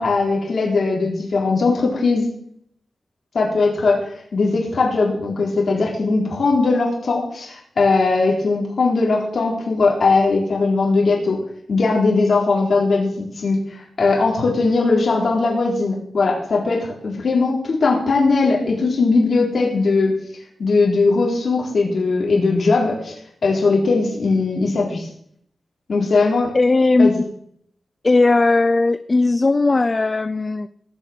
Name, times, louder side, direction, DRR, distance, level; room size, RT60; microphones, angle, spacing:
voice 1, 0.0-2.3 3.3-11.4 11.7-20.1 20.6-23.1 23.4-25.1 25.9-26.5 27.0-27.1, left 3 dB, 60° left, -2 dB, 4.2 m, -19 dB
voice 2, 26.5-27.3 28.0-30.7, left 3 dB, 30° left, 14 dB, 0.4 m, -17 dB
18.0 x 6.6 x 7.9 m, 0.66 s
wide cardioid pair, 140°, 0 cm